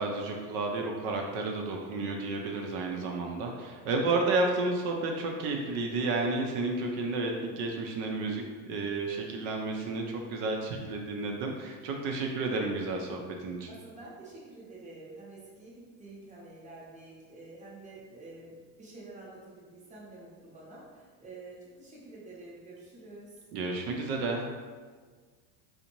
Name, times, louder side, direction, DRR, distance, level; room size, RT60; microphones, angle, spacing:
voice 1, 0.0-13.7 23.5-24.5, right 3 dB, 70° right, 1 dB, 0.6 m, -31 dB
voice 2, 13.7-23.4, right 2 dB, 15° right, -6 dB, 0.6 m, -48 dB
2.5 x 2.1 x 2.9 m, 1.5 s
supercardioid pair, 115°, 49 cm